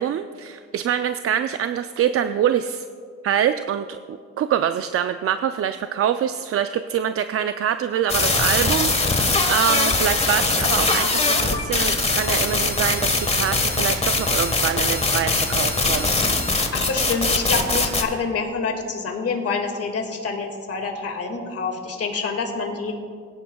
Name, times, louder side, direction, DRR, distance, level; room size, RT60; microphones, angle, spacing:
voice 1, 0.0-2.8 3.2-16.1, right 9 dB, 50° right, 10 dB, 0.4 m, -25 dB
sound 1, 8.1-18.0, left 3 dB, 20° left, 1.4 m, -21 dB
voice 2, 16.5-23.0, left 4 dB, 50° left, 3 dB, 2.0 m, -27 dB
19.5 x 10.5 x 2.3 m, 2.1 s
cardioid pair, 90°, 30 cm